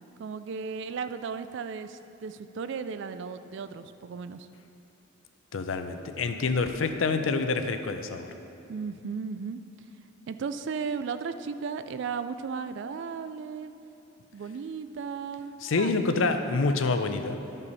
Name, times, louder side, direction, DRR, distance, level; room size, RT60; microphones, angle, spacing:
voice 1, 0.2-4.5 8.7-9.6 10.3-13.7 14.3-15.9, right 5 dB, 65° right, 11 dB, 0.3 m, -35 dB
voice 2, 5.5-8.3 15.6-17.4, left 3 dB, 80° left, 8 dB, 0.5 m, -27 dB
12.0 x 5.4 x 4.1 m, 2.8 s
head